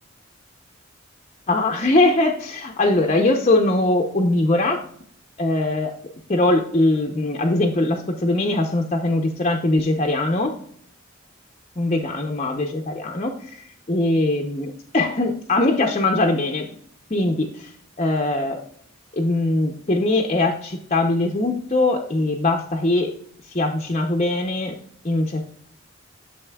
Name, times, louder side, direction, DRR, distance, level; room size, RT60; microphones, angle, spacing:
voice 1, 1.5-4.8 5.4-5.9 6.3-10.5 11.8-16.7 17.1-17.7 18.0-18.6 19.1-23.1 23.5-24.7 25.0-25.5, left 2 dB, 30° left, 2 dB, 0.7 m, -21 dB
8.9 x 6.9 x 2.3 m, 0.63 s
head